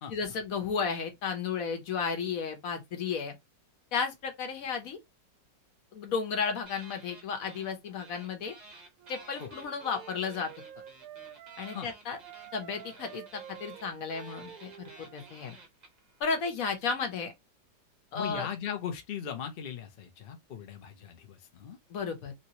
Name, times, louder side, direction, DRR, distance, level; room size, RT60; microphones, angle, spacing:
voice 1, 0.1-3.3 3.9-5.0 5.9-8.5 9.1-10.5 11.6-12.2 12.5-15.6 16.2-17.3 18.1-18.5 21.9-22.3, left 5 dB, 55° left, 1.2 m, -33 dB
sound 1, 6.7-7.7 8.0-16.2, right 2 dB, 40° right, 0.6 m, -53 dB
Wind instrument woodwind instrument, 9.0-11.9 12.2-15.4, right 10 dB, 70° right, 0.9 m, -49 dB
voice 2, 18.1-21.8, left 8 dB, 75° left, 0.5 m, -38 dB
3.2 x 2.9 x 2.8 m
omnidirectional pair, 1.9 m